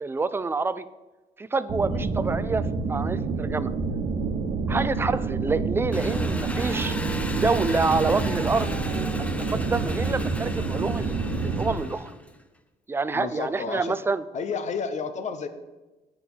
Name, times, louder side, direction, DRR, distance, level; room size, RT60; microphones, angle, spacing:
voice 1, 0.0-0.8 1.4-3.7 4.7-6.9 7.4-8.7 9.5-12.1 12.9-14.2, right 4 dB, 15° right, 15 dB, 0.4 m, -27 dB
sound 1, 1.7-11.8, right 4 dB, 55° right, 1.2 m, -28 dB
Engine, 5.9-12.4, left 1 dB, 10° left, 0.8 m, -35 dB
voice 2, 13.1-14.0 14.3-15.5, left 5 dB, 45° left, 10 dB, 0.9 m, -31 dB
8.5 x 5.1 x 6.8 m, 1.1 s
cardioid pair, 110°, 17 cm